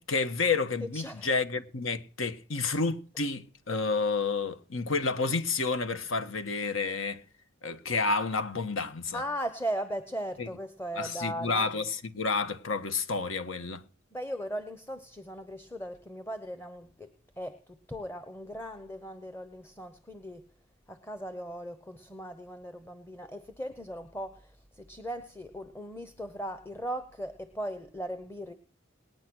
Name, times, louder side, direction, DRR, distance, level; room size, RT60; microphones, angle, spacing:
voice 1, 0.0-7.2 7.6-9.2 10.4-10.5 11.0-13.8, left 4 dB, 70° left, 1.4 m, -30 dB
voice 2, 0.8-1.3 9.1-11.7 14.1-17.1 17.4-20.5 20.9-28.5, equal, 10° left, 0.9 m, -38 dB
20.0 x 9.4 x 6.2 m
head